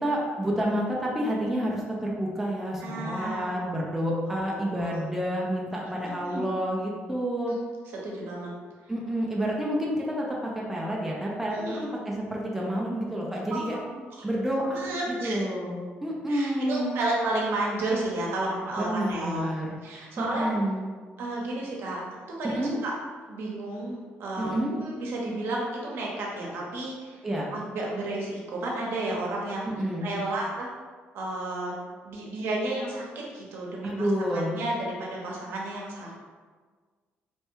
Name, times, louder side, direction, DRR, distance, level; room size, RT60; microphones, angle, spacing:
voice 1, 0.0-7.6 8.9-10.3 10.7-11.8 12.1-13.8 14.2-14.8 15.1-17.0 18.8-19.7 20.2-20.9 22.4-22.8 24.4-24.8 27.2-27.5 29.6-30.1 33.8-34.5, equal, 5° right, -3 dB, 0.4 m, -29 dB
voice 2, 2.8-3.6 4.3-4.4 4.7-5.0 6.0-6.4 8.0-8.5 11.5-11.9 13.5-14.0 14.7-15.4 16.3-19.5 19.8-20.5 21.2-22.0 22.4-22.9 23.3-27.2 27.5-29.7 30.0-30.7 31.1-31.7 32.0-36.1, right 2 dB, 65° right, -2 dB, 0.8 m, -32 dB
3.1 x 2.2 x 3.0 m, 1.5 s
cardioid pair, 135°, 4 cm